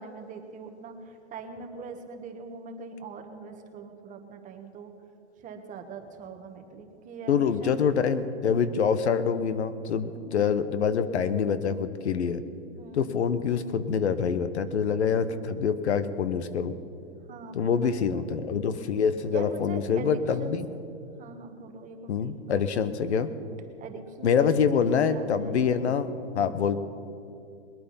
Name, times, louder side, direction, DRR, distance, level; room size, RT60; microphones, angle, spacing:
voice 1, 0.0-4.9 5.4-7.8 8.6-9.1 10.0-10.4 12.8-13.1 17.3-18.4 19.3-20.6 21.2-22.9 23.8-24.4 24.7-25.6, right 4 dB, 25° right, 5 dB, 1.4 m, -42 dB
voice 2, 7.3-12.4 12.9-16.7 17.5-20.7 22.1-23.3 24.2-26.8, left 6 dB, 85° left, 13 dB, 1.1 m, -26 dB
21.5 x 8.8 x 5.7 m, 2.6 s
hypercardioid pair, 135°, 33 cm